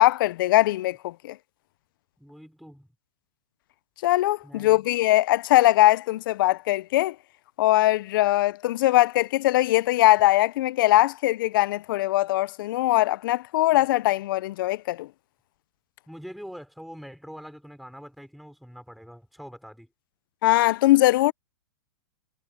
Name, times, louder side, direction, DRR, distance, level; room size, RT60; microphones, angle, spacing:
voice 1, 0.0-1.4 4.0-7.1 7.6-15.1 20.4-21.3, left 16 dB, 60° left, 0.6 m, -21 dB
voice 2, 2.2-2.9 4.4-4.9 13.7-13.8 16.1-19.9, equal, ahead, 4.7 m, -44 dB
hypercardioid pair, 120°, 13 cm